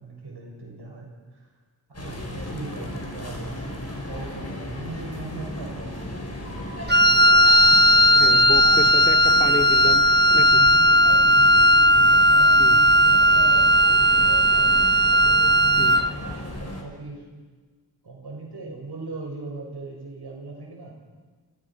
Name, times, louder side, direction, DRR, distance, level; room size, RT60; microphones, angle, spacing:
voice 1, 0.0-1.5 1.9-7.6 8.5-8.8 10.5-11.7 12.0-14.7 15.3-17.3 18.0-21.0, right 3 dB, 75° right, 0 dB, 6.6 m, -40 dB
sound 1, 1.9-16.8, left 1 dB, 40° left, 6.1 m, -35 dB
Wind instrument woodwind instrument, 6.9-16.1, equal, 25° right, 1.0 m, -16 dB
voice 2, 8.1-10.0 10.3-10.6 12.6-12.8 15.8-16.0, left 1 dB, 20° left, 4 dB, 3.1 m, -30 dB
29.0 x 28.5 x 6.2 m, 1.4 s
wide cardioid pair, 65°, 40 cm